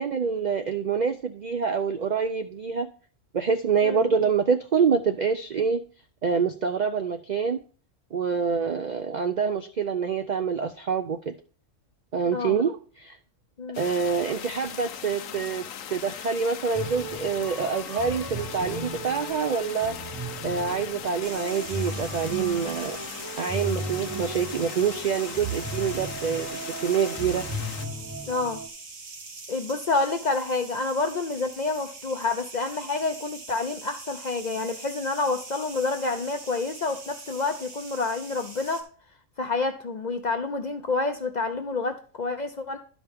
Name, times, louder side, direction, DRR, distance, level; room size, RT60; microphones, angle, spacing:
voice 1, 0.0-2.9 3.3-5.8 6.2-7.6 8.1-11.3 12.1-13.2 13.8-15.6 15.9-19.9 20.4-23.0 23.4-27.5, right 6 dB, 65° right, 7 dB, 0.4 m, -26 dB
sound 1, 13.7-27.9, left 9 dB, 80° left, 1.1 m, -39 dB
sound 2, 16.7-28.7, right 2 dB, 20° right, 0.5 m, -36 dB
sound 3, 21.2-38.8, right 3 dB, 85° right, 1.7 m, -43 dB
voice 2, 28.3-28.6 29.5-38.8 39.4-42.8, left 3 dB, 50° left, 7 dB, 0.5 m, -28 dB
11.5 x 5.1 x 3.5 m, 0.41 s
omnidirectional pair, 1.4 m